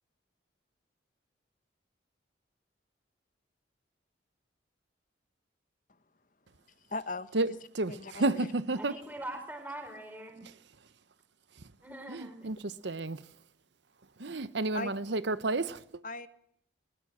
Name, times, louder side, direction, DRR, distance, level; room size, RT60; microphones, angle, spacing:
voice 1, 6.8-7.6 8.0-8.5 14.7-14.9 16.0-16.3, left 2 dB, 45° left, 1.4 m, -38 dB
voice 2, 7.3-9.0 10.4-10.9 11.5-11.7 12.1-13.4 14.2-16.0, right 2 dB, 65° right, 0.9 m, -32 dB
voice 3, 8.8-10.4 11.8-12.5, right 1 dB, 10° right, 4.3 m, -42 dB
21.5 x 21.0 x 7.4 m
head